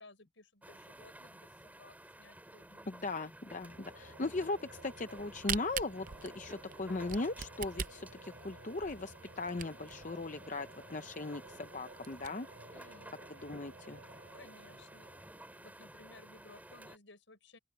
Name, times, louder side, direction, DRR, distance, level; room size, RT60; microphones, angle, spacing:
voice 1, 0.0-2.9 12.7-13.2 14.3-15.1 15.6-17.6, left 2 dB, 70° left, 5.9 m, -58 dB
sound 1, 0.6-17.0, right 1 dB, 10° right, 4.4 m, -53 dB
voice 2, 2.9-12.5 13.4-14.0, left 2 dB, 40° left, 0.7 m, -38 dB
Singing / Musical instrument, 3.7-16.2, right 2 dB, 85° right, 4.8 m, -56 dB
Camera, 5.1-10.0 10.6-10.7 10.9-11.0 11.5-11.6 11.9-12.3, right 8 dB, 40° right, 0.7 m, -40 dB
open air
head